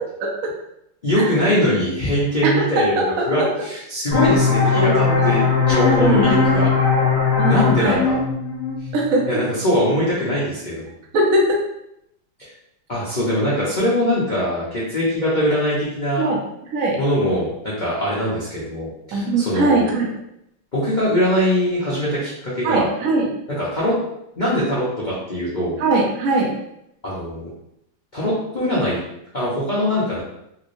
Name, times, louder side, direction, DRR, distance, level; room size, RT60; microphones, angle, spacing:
voice 1, 1.0-6.7 7.5-8.2 9.3-10.9 12.4-12.5 12.9-16.3 17.0-19.9 20.7-22.9 23.5-24.0 24.4-25.7 27.0-27.5 28.1-29.0 29.3-30.2, equal, 75° left, -8 dB, 0.4 m, -22 dB
voice 2, 2.4-3.2 4.7-5.3 6.0-6.7 7.4-8.0 8.9-9.2 11.1-11.6 16.2-16.4 16.7-17.0 19.1-20.1 22.6-23.3 25.8-26.5, right 2 dB, 60° right, -1 dB, 0.9 m, -20 dB
sound 1, 4.1-9.5, left 5 dB, 35° left, 1.4 m, -19 dB
3.5 x 3.1 x 2.6 m, 0.80 s
omnidirectional pair, 2.2 m